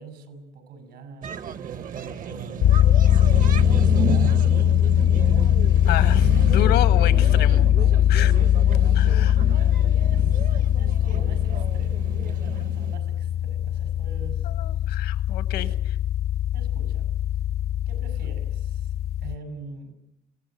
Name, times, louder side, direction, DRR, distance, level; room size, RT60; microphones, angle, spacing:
voice 1, 0.0-3.2 3.6-6.7 7.1-7.3 7.7-8.2 8.7-9.1 9.4-14.5 15.5-15.7 16.5-17.1 17.9-18.9 19.2-19.9, right 4 dB, 80° right, 11 dB, 6.2 m, -44 dB
sound 1, 1.2-13.0, right 7 dB, 55° right, 1.1 m, -32 dB
sound 2, 2.6-19.3, left 11 dB, 70° left, 0.9 m, -20 dB
voice 2, 5.9-7.6 8.1-8.3 8.9-9.4 14.6-15.7, left 12 dB, 85° left, 12 dB, 1.6 m, -29 dB
26.0 x 17.5 x 9.4 m, 0.91 s
cardioid pair, 110°, 17 cm